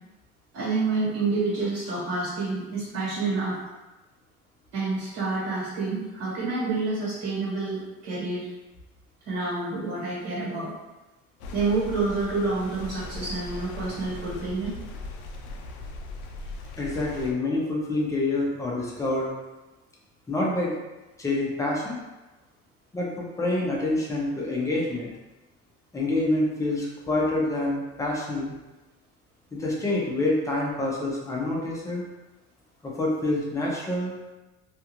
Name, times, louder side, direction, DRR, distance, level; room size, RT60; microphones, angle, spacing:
voice 1, 0.5-3.6 4.7-8.5 9.2-10.7 11.5-14.7, right 3 dB, 65° right, -8 dB, 1.4 m, -28 dB
sound 1, 11.4-17.3, left 2 dB, 85° left, 0.5 m, -39 dB
voice 2, 16.8-19.3 20.3-20.7 21.2-22.0 22.9-25.1 25.9-28.5 29.5-32.0 32.8-34.1, left 2 dB, 10° left, -4 dB, 0.5 m, -27 dB
2.5 x 2.3 x 2.9 m, 1.1 s
cardioid pair, 135°, 30 cm